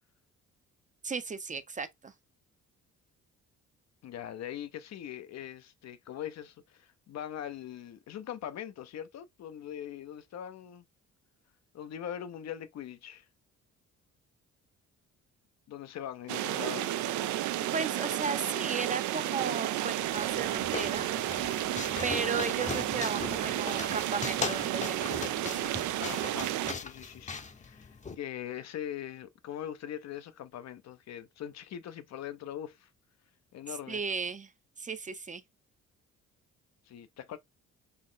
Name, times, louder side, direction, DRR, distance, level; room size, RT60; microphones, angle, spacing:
voice 1, 1.0-2.1 16.8-17.4 17.7-21.1 22.0-25.9 33.9-34.5 34.8-35.4, right 5 dB, 25° right, 0.6 m, -35 dB
voice 2, 4.0-10.8 11.7-13.2 15.7-16.9 26.0-32.9 33.5-34.0 36.9-37.4, left 10 dB, 60° left, 0.6 m, -41 dB
sound 1, 16.3-26.7, right 13 dB, 75° right, 0.5 m, -32 dB
sound 2, 20.0-28.2, left 4 dB, 25° left, 0.7 m, -39 dB
4.1 x 2.4 x 3.7 m
cardioid pair, 90°, 30 cm